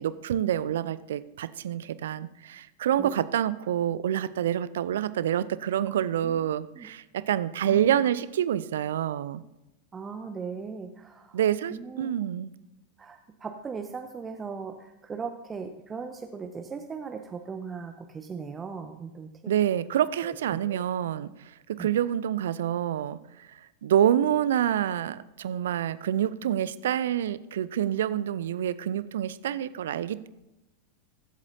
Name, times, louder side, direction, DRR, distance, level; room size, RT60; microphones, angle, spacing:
voice 1, 0.0-9.4 11.3-12.5 19.5-21.3 21.7-23.5 23.8-30.3, right 10 dB, 60° right, 16 dB, 0.5 m, -27 dB
voice 2, 9.9-11.4 11.7-12.1 13.0-19.5 20.2-20.8 21.8-21.9, right 5 dB, 20° right, 5 dB, 0.7 m, -38 dB
21.5 x 8.1 x 2.7 m, 0.94 s
figure-of-eight pair, 90°, 0 cm